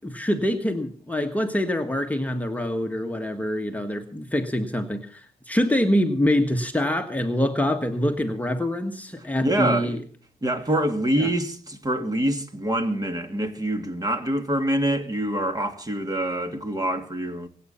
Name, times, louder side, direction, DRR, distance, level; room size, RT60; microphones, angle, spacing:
voice 1, 0.0-10.0 11.2-11.3, left 1 dB, 10° left, 1.5 m, -25 dB
voice 2, 9.4-10.0 10.4-17.5, right 1 dB, 25° right, 2.7 m, -25 dB
24.0 x 8.6 x 5.7 m
cardioid pair, 85°, 16 cm